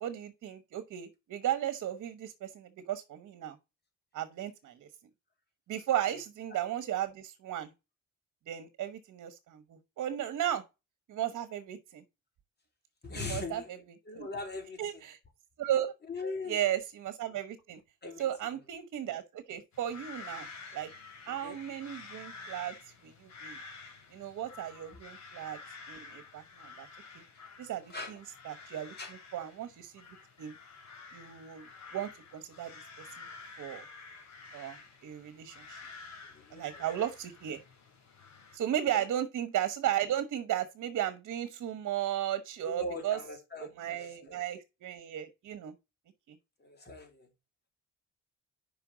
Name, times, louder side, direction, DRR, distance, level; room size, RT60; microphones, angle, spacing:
voice 1, 0.0-3.6 4.1-4.9 5.7-7.7 8.5-10.6 11.1-12.0 13.1-13.8 14.1-14.3 14.8-15.2 15.6-15.9 16.5-17.8 18.2-20.5 20.7-20.9 21.3-22.7 23.0-23.6 24.1-25.6 25.9-26.9 27.6-28.2 28.4-28.9 29.3-30.0 30.4-30.5 31.1-32.7 33.2-33.3 33.6-33.8 34.5-35.8 36.5-37.6 38.5-43.2 43.6-45.7 46.3-46.4, right 11 dB, 70° right, 1.2 m, -35 dB
voice 2, 13.0-13.7 14.1-14.8 16.1-16.6 18.0-18.3 21.3-21.6 27.3-27.4 27.9-28.2 28.6-28.7 29.0-29.1 36.3-36.8 38.9-39.0 42.7-44.4 46.6-47.3, left 2 dB, 35° left, 3.1 m, -40 dB
sound 1, 19.7-38.6, left 4 dB, 65° left, 2.8 m, -50 dB
5.5 x 5.1 x 6.2 m
cardioid pair, 90°, 30 cm